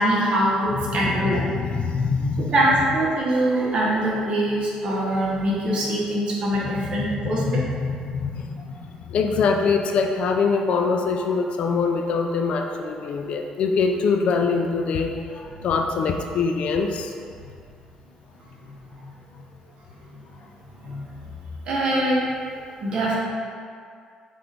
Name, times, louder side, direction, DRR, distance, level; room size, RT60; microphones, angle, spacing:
voice 1, 0.0-1.4 2.5-7.6 20.8-21.0 21.7-22.2 22.8-23.2, right 1 dB, 50° right, -4 dB, 1.0 m, -23 dB
voice 2, 0.7-2.5 7.1-8.8 9.1-17.1, left 4 dB, 60° left, 4 dB, 0.4 m, -24 dB
5.8 x 2.5 x 3.3 m, 2.2 s
cardioid pair, 125°, 2 cm